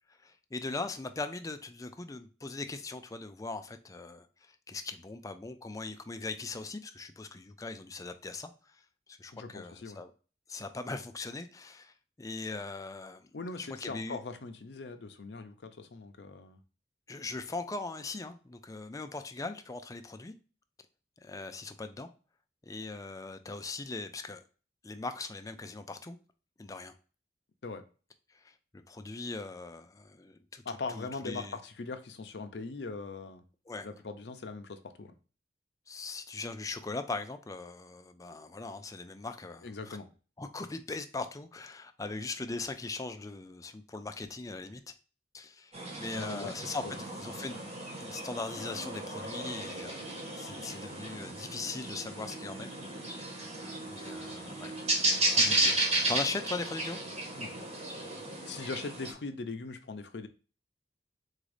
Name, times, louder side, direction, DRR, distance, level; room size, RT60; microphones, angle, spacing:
voice 1, 0.1-8.8 9.1-10.1 10.5-13.3 13.6-14.2 17.1-20.3 21.2-22.1 22.6-24.4 24.8-26.2 26.6-26.9 28.3-30.6 30.9-31.6 33.7-33.9 35.9-40.0 40.4-44.8 45.3-47.6 48.0-50.0 50.3-52.7 53.9-54.7 55.3-55.8 56.1-57.0, left 3 dB, 20° left, 0.4 m, -40 dB
voice 2, 9.3-10.0 13.3-16.6 27.6-27.8 30.7-33.4 33.8-35.1 39.6-40.1 46.1-46.5 46.8-47.0 55.4-55.5 57.3-57.5 58.5-60.3, left 3 dB, 70° left, 0.6 m, -40 dB
sound 1, 45.7-59.1, right 2 dB, 40° right, 1.3 m, -34 dB
4.0 x 2.6 x 4.8 m
head